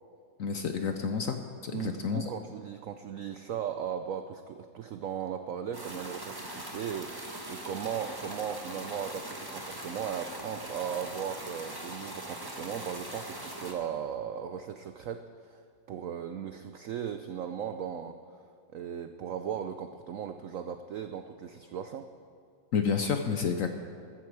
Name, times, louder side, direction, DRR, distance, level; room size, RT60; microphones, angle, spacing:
voice 1, 0.4-1.4 1.6-2.3 22.7-23.7, left 6 dB, 65° left, 6 dB, 0.8 m, -29 dB
voice 2, 1.7-18.4 18.7-22.1, right 8 dB, 85° right, 8 dB, 0.7 m, -37 dB
sound 1, 5.7-13.7, right 1 dB, 15° right, 1.4 m, -41 dB
14.0 x 14.0 x 4.7 m, 2.3 s
omnidirectional pair, 2.0 m